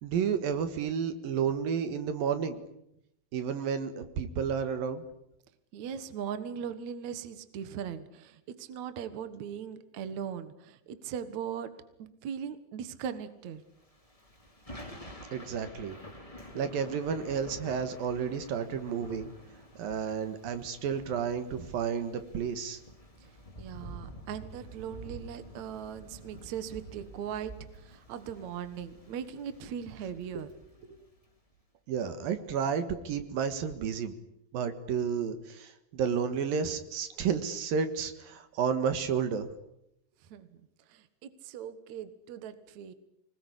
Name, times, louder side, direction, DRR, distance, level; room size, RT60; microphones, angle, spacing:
voice 1, 0.0-2.6 3.3-5.0 15.3-16.0 16.5-19.3 19.8-22.8 31.9-34.2 34.5-39.5, right 7 dB, 75° right, 9 dB, 3.3 m, -31 dB
voice 2, 5.7-11.7 12.0-13.6 23.6-30.5 30.8-31.0 40.3-40.5 40.9-42.9, right 8 dB, 60° right, 11 dB, 2.5 m, -39 dB
Thunder / Rain, 13.8-31.3, equal, 10° left, 2.6 m, -49 dB
25.5 x 20.5 x 9.9 m, 0.81 s
omnidirectional pair, 4.2 m